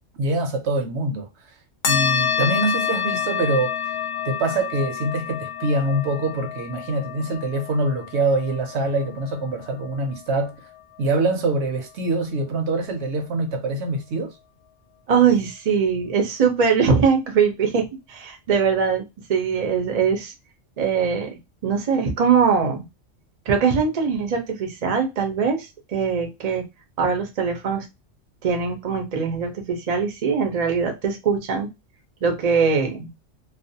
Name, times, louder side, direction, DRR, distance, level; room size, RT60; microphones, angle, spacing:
voice 1, 0.2-1.3 1.9-3.7 4.2-10.5 11.0-14.3, right 2 dB, 70° right, 0.9 m, -24 dB
sound 1, 1.8-10.8, left 8 dB, 65° left, 0.4 m, -28 dB
voice 2, 15.1-19.0 19.3-20.3 20.8-22.8 23.5-25.7 25.9-26.6 27.0-27.9 28.4-31.7 32.2-33.1, right 6 dB, 45° right, 0.5 m, -21 dB
2.4 x 2.0 x 2.6 m
omnidirectional pair, 1.3 m